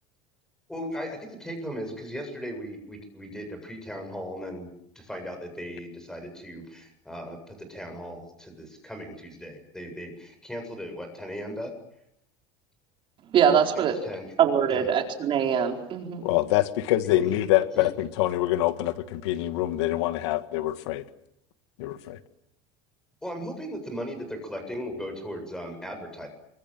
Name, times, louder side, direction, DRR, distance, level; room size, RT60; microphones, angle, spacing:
voice 1, 0.7-4.7 4.9-11.7 13.7-14.3 14.7-14.9 17.1-17.3 17.7-17.9 23.2-26.3, equal, 5° left, 6 dB, 7.7 m, -37 dB
voice 2, 13.3-14.0 14.4-16.3, right 8 dB, 35° right, 3 dB, 4.5 m, -23 dB
voice 3, 16.2-21.0 21.8-22.2, left 15 dB, 85° left, 11 dB, 1.8 m, -25 dB
29.0 x 23.5 x 7.6 m, 0.76 s
cardioid pair, 145°, 14 cm